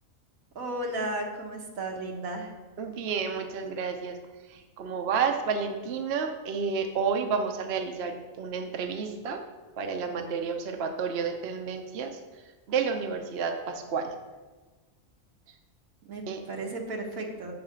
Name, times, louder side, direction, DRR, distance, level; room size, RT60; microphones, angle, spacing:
voice 1, 0.5-2.5 16.0-17.5, right 2 dB, 85° right, 1 dB, 1.6 m, -34 dB
voice 2, 2.8-4.2 4.8-9.4 9.8-12.1 12.7-14.2 16.3-16.4, right 5 dB, 55° right, 4 dB, 0.9 m, -30 dB
5.9 x 5.6 x 6.7 m, 1.3 s
omnidirectional pair, 1.4 m